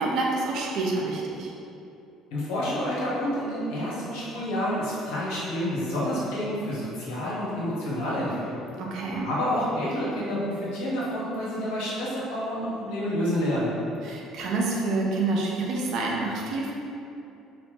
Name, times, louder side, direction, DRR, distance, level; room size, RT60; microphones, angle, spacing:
voice 1, 0.0-1.5 8.8-9.3 14.0-16.7, right 3 dB, 60° right, -2 dB, 0.5 m, -27 dB
voice 2, 2.3-8.6 9.1-13.7, equal, 70° left, -7 dB, 0.8 m, -29 dB
2.9 x 2.1 x 3.0 m, 2.7 s
hypercardioid pair, 60°, 0 cm